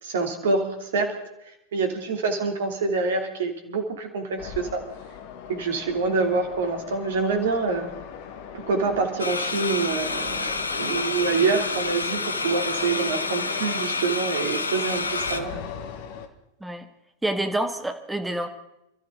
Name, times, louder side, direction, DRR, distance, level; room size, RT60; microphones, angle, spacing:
voice 1, 0.0-1.2 1.7-4.8 5.5-7.9 8.5-15.6, right 4 dB, 60° right, 5 dB, 2.8 m, -26 dB
sound 1, 4.4-16.3, left 7 dB, 50° left, 1.6 m, -39 dB
sound 2, 9.2-15.4, left 3 dB, 80° left, 1.0 m, -29 dB
voice 2, 17.2-18.5, right 1 dB, 5° right, 6 dB, 1.6 m, -27 dB
27.5 x 13.5 x 3.8 m, 0.86 s
figure-of-eight pair, 90°, 0 cm